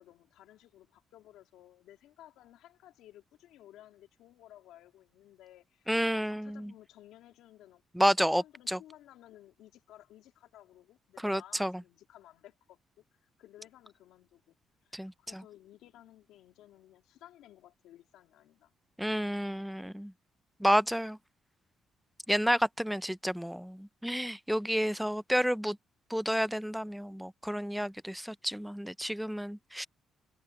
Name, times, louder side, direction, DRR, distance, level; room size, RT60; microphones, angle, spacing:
voice 1, 0.0-18.7 28.4-28.6, left 13 dB, 90° left, 3.0 m, -57 dB
voice 2, 5.9-6.7 8.0-8.8 11.2-11.7 14.9-15.4 19.0-20.1 20.6-21.2 22.3-25.8 26.1-29.9, equal, ahead, 0.5 m, -30 dB
cardioid pair, 90°, 0 cm